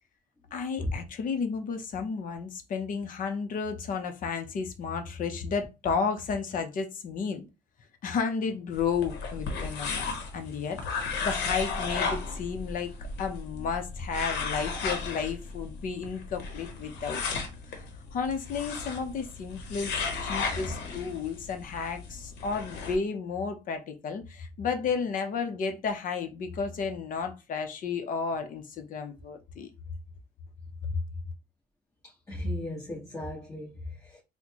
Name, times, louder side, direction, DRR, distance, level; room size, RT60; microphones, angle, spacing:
voice 1, 0.5-7.4 8.0-17.2 18.1-29.7, left 5 dB, 55° left, 0.7 m, -32 dB
sound 1, 8.7-23.0, left 4 dB, 80° left, 0.9 m, -35 dB
voice 2, 32.0-34.2, left 1 dB, 20° left, 1.3 m, -36 dB
4.2 x 2.2 x 2.9 m
cardioid pair, 110°, 17 cm